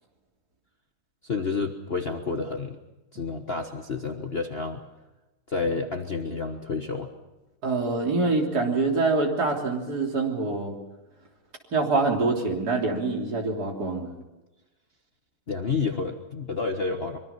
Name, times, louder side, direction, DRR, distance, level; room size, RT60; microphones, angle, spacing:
voice 1, 1.2-2.8 3.1-4.8 5.5-7.1 15.5-17.2, left 4 dB, 35° left, 3 dB, 1.4 m, -29 dB
voice 2, 7.6-10.8 11.7-14.1, right 3 dB, 50° right, 0 dB, 3.8 m, -25 dB
24.5 x 23.5 x 5.8 m, 1.1 s
omnidirectional pair, 2.2 m